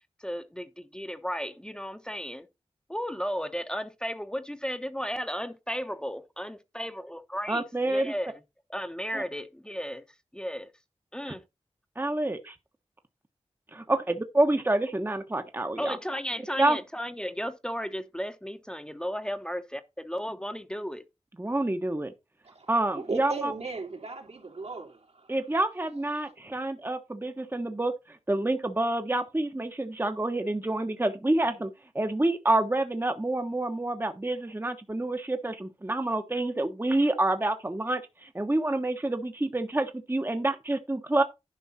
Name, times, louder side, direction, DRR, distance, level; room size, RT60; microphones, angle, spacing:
voice 1, 0.2-2.5 2.9-8.3 8.7-10.0 10.3-10.7 11.1-11.4 15.8-21.0, equal, 5° left, 1.0 m, -34 dB
voice 2, 7.5-8.1 9.1-9.2 11.3-11.4 12.0-12.5 13.7-16.0 16.6-16.8 21.4-22.1 22.7-23.5 25.3-41.2, right 2 dB, 20° right, 1.1 m, -28 dB
voice 3, 22.4-25.4 26.1-26.3, right 3 dB, 75° right, 3.3 m, -37 dB
11.0 x 5.4 x 4.1 m
wide cardioid pair, 55°, 11 cm